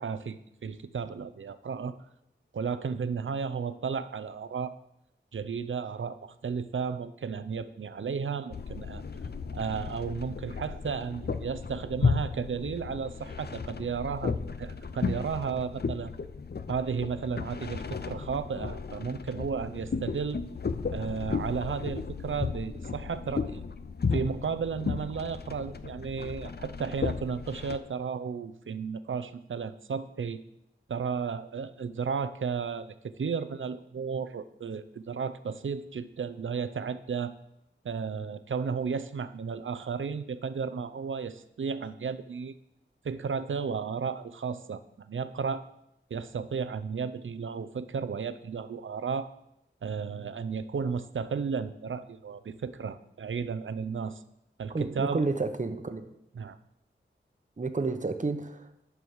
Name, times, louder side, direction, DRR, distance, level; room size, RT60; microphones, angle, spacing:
voice 1, 0.0-2.0 2.5-4.7 5.3-9.0 9.5-16.1 16.7-20.4 20.9-23.6 24.1-30.4 30.9-37.3 37.8-42.5 43.0-45.6 46.1-49.3 49.8-54.2 54.6-55.2 56.4-56.6, right 6 dB, 80° right, 0.6 m, -33 dB
sound 1, 8.5-27.8, left 5 dB, 55° left, 0.6 m, -34 dB
voice 2, 54.7-56.1 57.6-58.8, right 3 dB, 40° right, 0.9 m, -31 dB
11.5 x 4.8 x 7.2 m
wide cardioid pair, 65°, 20 cm